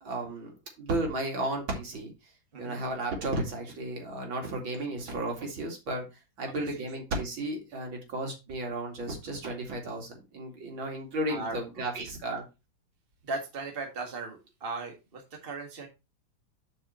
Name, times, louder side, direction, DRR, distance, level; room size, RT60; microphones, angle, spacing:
voice 1, 0.0-2.1 2.6-12.4, right 2 dB, 70° right, 1 dB, 3.2 m, -34 dB
voice 2, 11.9-12.4 13.2-15.9, right 3 dB, 30° right, 2 dB, 1.8 m, -37 dB
7.7 x 5.4 x 4.3 m, 0.26 s
omnidirectional pair, 2.2 m